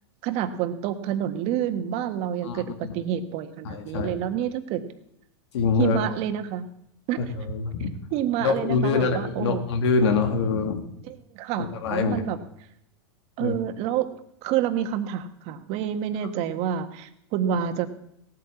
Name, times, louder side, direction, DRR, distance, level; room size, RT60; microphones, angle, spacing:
voice 1, 0.2-4.8 5.8-6.6 7.1-7.2 8.1-9.6 11.1-12.4 13.4-14.1 14.4-17.9, right 10 dB, 45° right, 9 dB, 1.6 m, -28 dB
voice 2, 2.4-2.9 3.6-4.1 5.5-6.0 7.4-7.9 8.4-10.8 11.6-12.2 13.4-13.5, left 5 dB, 75° left, 5 dB, 2.4 m, -24 dB
17.5 x 9.1 x 7.3 m, 0.74 s
supercardioid pair, 125°, 14 cm